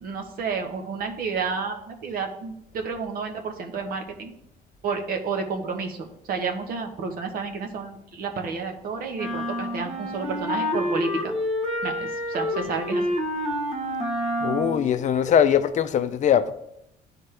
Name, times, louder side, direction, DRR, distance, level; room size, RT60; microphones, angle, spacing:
voice 1, 0.0-4.3 4.8-11.3 11.8-13.0, right 5 dB, 60° right, 1.2 m, -30 dB
sound 1, 9.2-14.9, left 1 dB, 40° right, 1.1 m, -28 dB
voice 2, 14.4-16.5, left 8 dB, 45° left, 0.5 m, -21 dB
11.5 x 4.3 x 3.4 m
cardioid pair, 110°, 17 cm